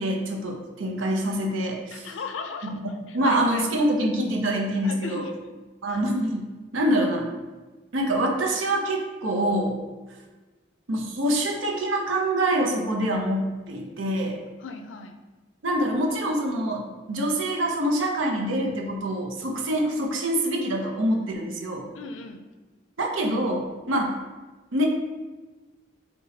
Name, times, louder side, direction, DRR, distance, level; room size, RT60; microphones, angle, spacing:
voice 1, 0.0-2.1 2.6-2.8 3.1-5.3 5.8-7.3 7.9-9.8 10.9-14.4 15.6-21.9 23.0-24.2 24.7-24.8, right 1 dB, 90° right, 1 dB, 0.6 m, -25 dB
voice 2, 1.9-3.7 4.8-5.3 5.9-6.0 14.6-15.2 21.9-22.4, left 4 dB, 80° left, 6 dB, 0.4 m, -37 dB
4.0 x 2.2 x 4.0 m, 1.2 s
head